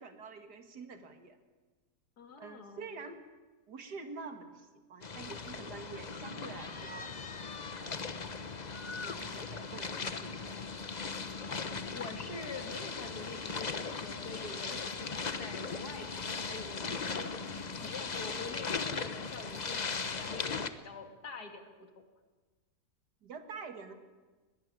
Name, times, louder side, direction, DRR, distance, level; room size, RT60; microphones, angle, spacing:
voice 1, 0.0-1.4 2.4-3.2 3.7-7.1 7.8-8.2 9.0-10.7 23.2-23.9, right 4 dB, 85° right, 7 dB, 2.4 m, -47 dB
voice 2, 2.2-2.8 11.9-22.0, left 4 dB, 75° left, 6 dB, 2.8 m, -46 dB
sound 1, 5.0-20.7, left 4 dB, 30° left, 0.9 m, -38 dB
20.5 x 17.5 x 9.9 m, 1.3 s
omnidirectional pair, 1.7 m